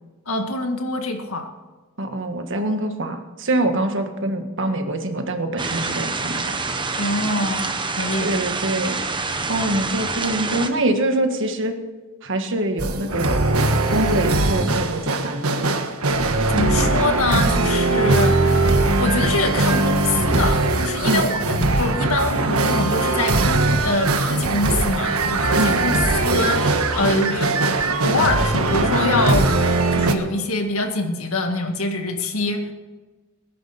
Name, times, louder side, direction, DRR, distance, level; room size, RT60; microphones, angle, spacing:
voice 1, 0.3-1.5 7.0-8.3 16.5-26.0 26.2-27.5 27.8-29.5 29.9-32.7, left 2 dB, 70° left, 5 dB, 2.0 m, -25 dB
voice 2, 2.0-6.6 8.2-9.0 9.5-11.8 12.2-13.6 13.9-15.7 21.1-21.3 25.6-25.8, right 1 dB, 60° right, 6 dB, 1.6 m, -24 dB
sound 1, 5.6-10.7, right 3 dB, 20° right, 1.1 m, -26 dB
sound 2, 12.8-30.1, right 2 dB, 80° right, 1.5 m, -20 dB
20.0 x 11.0 x 4.3 m, 1.3 s
head